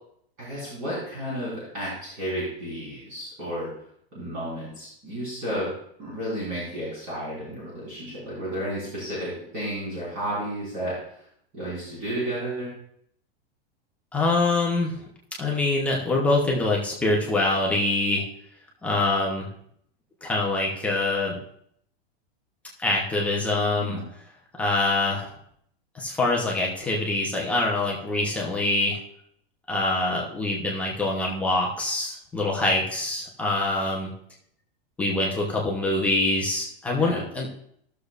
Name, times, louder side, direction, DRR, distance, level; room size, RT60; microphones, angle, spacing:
voice 1, 0.4-3.7 4.1-5.7 6.0-11.2 11.5-12.7 23.8-24.0 37.0-37.2, equal, 30° right, -9 dB, 3.7 m, -32 dB
voice 2, 14.1-14.9 15.4-18.2 18.8-19.5 20.2-21.4 22.8-24.0 24.6-25.3 25.9-29.0 29.7-34.1 35.0-37.5, left 2 dB, 5° left, -4 dB, 0.5 m, -24 dB
15.0 x 6.6 x 2.4 m, 0.68 s
supercardioid pair, 180°, 30 cm